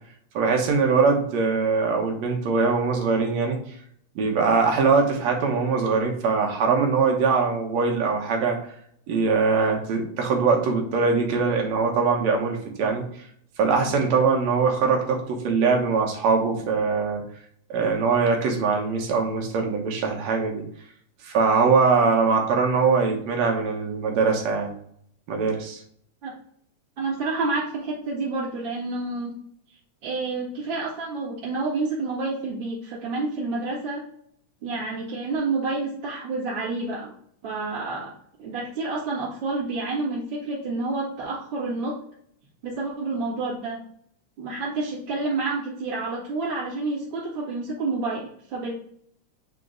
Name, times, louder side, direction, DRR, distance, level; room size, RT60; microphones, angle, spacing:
voice 1, 0.3-3.6 4.2-8.6 9.1-13.0 13.6-17.2 17.7-20.6 21.2-24.7 25.3-25.8, right 4 dB, 70° right, 2 dB, 2.3 m, -22 dB
voice 2, 27.0-29.3 30.0-34.0 34.6-37.1 37.4-38.1 38.4-42.0 42.6-43.8 44.4-48.7, right 3 dB, 45° right, -9 dB, 2.4 m, -29 dB
8.3 x 3.0 x 3.8 m, 0.64 s
omnidirectional pair, 3.3 m